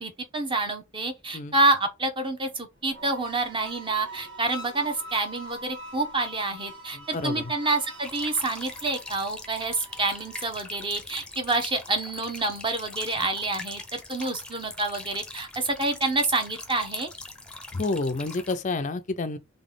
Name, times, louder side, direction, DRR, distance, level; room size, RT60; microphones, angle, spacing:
voice 1, 0.0-17.1, right 2 dB, 25° right, 0.9 m, -28 dB
sound 1, 2.7-12.1, right 1 dB, 60° right, 1.7 m, -45 dB
voice 2, 6.9-7.4 17.7-19.4, left 3 dB, 40° left, 0.4 m, -29 dB
sound 2, 8.0-18.6, left 2 dB, 5° left, 0.7 m, -42 dB
4.0 x 3.4 x 3.6 m
head